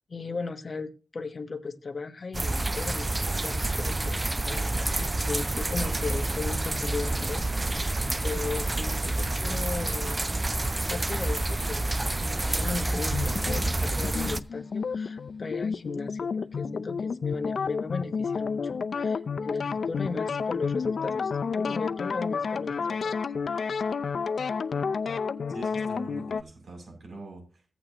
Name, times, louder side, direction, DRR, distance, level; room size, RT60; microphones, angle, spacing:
voice 1, 0.1-7.4 7.8-8.0 8.2-10.2 10.8-11.8 12.2-21.3 21.6-23.2, left 4 dB, 45° left, 9 dB, 1.2 m, -36 dB
sound 1, 2.3-14.4, right 2 dB, 20° right, 0.5 m, -28 dB
sound 2, 12.4-15.3, left 1 dB, 5° left, 1.5 m, -48 dB
sound 3, 13.1-26.4, left 5 dB, 70° left, 0.5 m, -30 dB
voice 2, 25.5-27.7, right 2 dB, 70° right, 2 dB, 7.4 m, -43 dB
15.5 x 8.9 x 3.0 m, 0.34 s
wide cardioid pair, 110°, 0 cm